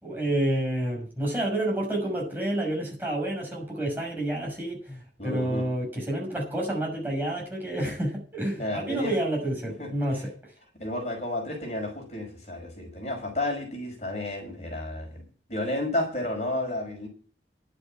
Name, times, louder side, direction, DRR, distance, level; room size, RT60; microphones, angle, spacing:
voice 1, 0.0-10.3, right 1 dB, 10° right, 6.0 m, -29 dB
voice 2, 5.2-5.7 8.6-9.2 9.8-10.2 10.7-15.2 15.5-17.1, left 1 dB, 40° left, 5.5 m, -32 dB
11.0 x 8.3 x 8.7 m
head